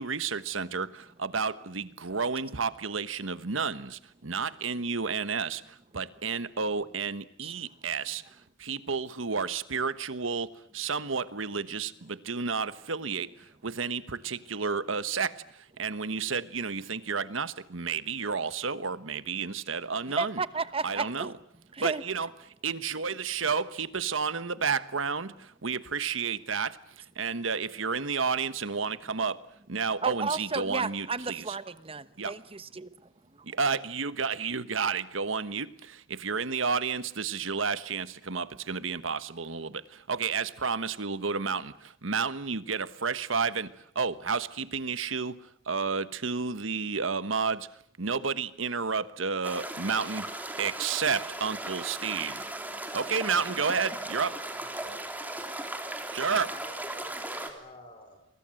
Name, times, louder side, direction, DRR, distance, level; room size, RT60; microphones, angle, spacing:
voice 1, 0.0-20.4 20.8-21.3 21.8-22.3 22.6-29.4 29.7-31.6 32.2-32.3 33.4-47.7 48.0-50.3 50.6-52.5 52.9-54.3 56.1-56.5, right 5 dB, 75° right, 1.3 m, -31 dB
voice 2, 20.2-21.4 21.7-22.0 30.0-32.9, right 4 dB, 30° right, 1.0 m, -33 dB
sound 1, 49.4-57.5, right 1 dB, 10° right, 3.2 m, -37 dB
voice 3, 54.2-55.4 56.5-58.3, left 1 dB, 25° left, 5.5 m, -51 dB
29.0 x 23.5 x 7.8 m
head